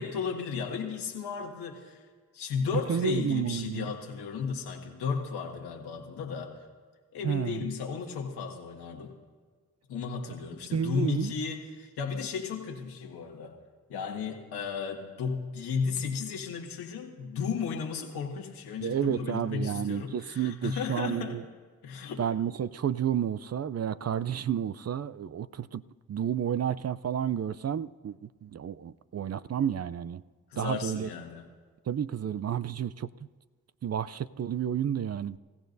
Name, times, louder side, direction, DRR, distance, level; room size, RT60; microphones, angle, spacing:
voice 1, 0.0-2.1 2.3-6.7 7.1-9.1 9.9-13.6 13.9-21.4 21.8-22.2 30.5-31.5, left 6 dB, 90° left, 1.9 m, -34 dB
voice 2, 2.9-3.9 7.2-7.6 10.7-11.3 18.8-21.4 22.2-25.8 26.1-30.2 30.6-31.1 31.9-33.1 33.8-35.4, right 8 dB, 40° right, 0.5 m, -31 dB
28.0 x 15.5 x 2.7 m
supercardioid pair, 40°, 38 cm